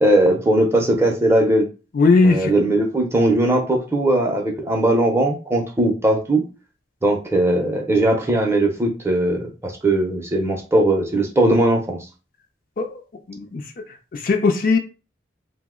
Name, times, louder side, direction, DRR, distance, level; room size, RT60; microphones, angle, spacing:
voice 1, 0.0-1.7 2.2-6.4 7.0-12.1, right 1 dB, 15° right, 0.5 m, -19 dB
voice 2, 1.9-2.5 12.8-12.9 13.3-13.6 14.1-14.8, left 3 dB, 45° left, 0.4 m, -18 dB
2.7 x 2.0 x 3.6 m
head